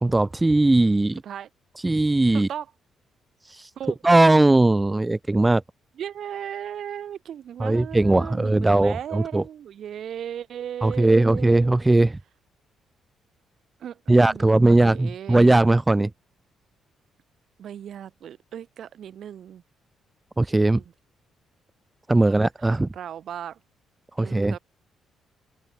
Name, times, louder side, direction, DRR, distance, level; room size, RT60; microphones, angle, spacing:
voice 1, 0.0-1.2 1.8-2.5 3.5-3.7 4.0-5.6 7.6-9.4 10.8-12.2 14.1-16.1 20.4-20.8 22.1-22.9 24.2-24.6, right 2 dB, 15° right, 2.5 m, -19 dB
voice 2, 2.3-2.7 3.8-4.0 6.0-11.8 13.8-15.4 17.6-19.6 20.7-20.8 22.2-22.4 22.8-23.6 24.2-24.6, right 9 dB, 65° right, 6.0 m, -36 dB
open air
cardioid pair, 90°, 0 cm